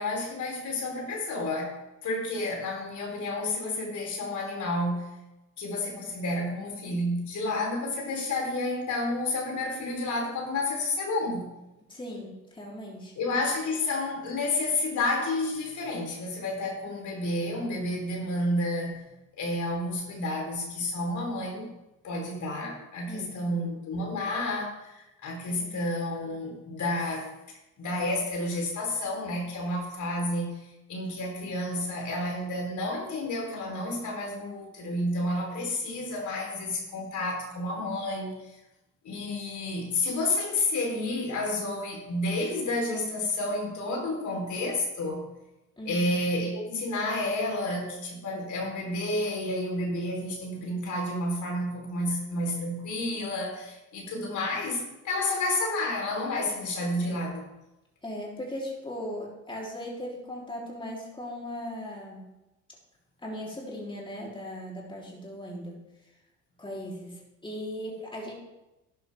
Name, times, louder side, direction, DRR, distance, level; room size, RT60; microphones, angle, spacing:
voice 1, 0.0-1.7 2.0-5.0 5.6-11.5 13.2-19.0 19.4-21.7 22.0-27.3 27.8-38.6 39.0-45.2 45.9-57.5, left 2 dB, 55° left, -1 dB, 4.3 m, -30 dB
voice 2, 11.9-13.1 23.1-23.6 25.6-25.8 45.8-46.0 58.0-62.3 63.2-65.8 66.6-67.1 67.4-68.3, left 1 dB, 15° left, -4 dB, 3.8 m, -38 dB
11.5 x 10.5 x 3.7 m, 0.96 s
hypercardioid pair, 65°, 35 cm